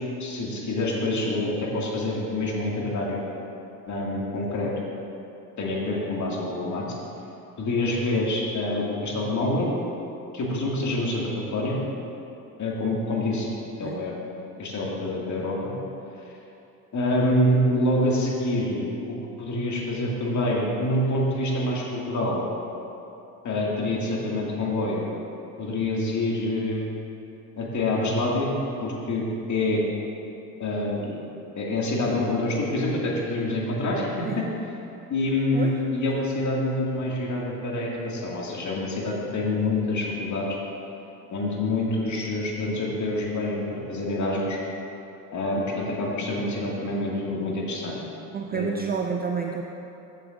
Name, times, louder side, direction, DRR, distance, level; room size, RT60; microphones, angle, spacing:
voice 1, 0.2-3.2 3.9-4.7 5.6-6.9 7.6-9.7 10.3-11.8 12.6-13.5 13.8-14.1 14.6-15.7 16.9-22.4 23.4-25.1 25.6-26.9 27.6-28.5 28.8-29.8 30.6-34.4 35.1-40.5 41.3-44.6 45.3-48.0 48.5-48.8, left 1 dB, 40° left, -3 dB, 2.1 m, -26 dB
voice 2, 48.3-49.6, right 6 dB, 20° right, 3 dB, 0.4 m, -29 dB
14.5 x 7.5 x 2.5 m, 2.8 s
figure-of-eight pair, 60°, 46 cm